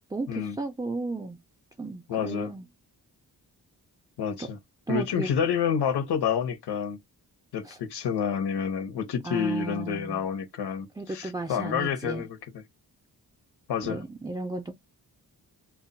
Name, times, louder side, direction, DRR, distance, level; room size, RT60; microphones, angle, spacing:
voice 1, 0.0-1.4 1.8-2.7 4.4-4.5 4.9-5.3 7.6-7.8 9.2-10.2 11.0-12.2 13.8-14.8, right 3 dB, 10° right, 0.3 m, -34 dB
voice 2, 2.1-2.5 4.2-4.6 4.9-7.0 7.5-12.4 13.7-14.0, left 7 dB, 85° left, 0.8 m, -28 dB
2.2 x 2.1 x 3.8 m
wide cardioid pair, 100°, 39 cm